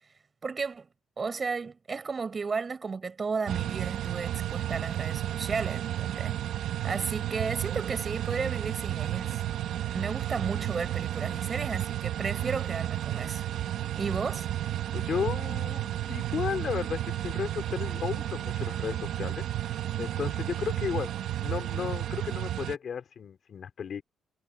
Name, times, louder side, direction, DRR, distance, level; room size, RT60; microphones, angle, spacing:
voice 1, 0.4-0.9 1.2-6.4 6.8-9.4 9.9-13.4 14.0-14.5, right 4 dB, 35° right, 6.7 m, -33 dB
sound 1, 3.5-22.8, right 12 dB, 75° right, 1.6 m, -32 dB
voice 2, 14.9-21.1 21.4-24.0, left 7 dB, 55° left, 4.7 m, -34 dB
cardioid pair, 90°, 0 cm